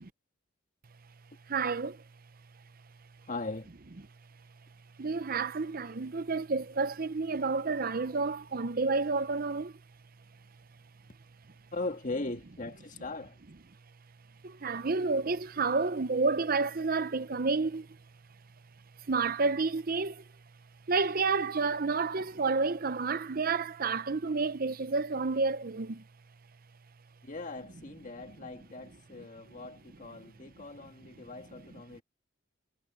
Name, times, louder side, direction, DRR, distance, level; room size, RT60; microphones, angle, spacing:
voice 1, 1.5-2.0 5.0-9.8 14.4-18.0 19.1-20.2 20.9-26.0 30.4-30.5, right 4 dB, 45° right, 0.7 m, -30 dB
voice 2, 3.3-3.7 11.7-13.4 27.2-32.0, left 2 dB, 40° left, 1.8 m, -39 dB
head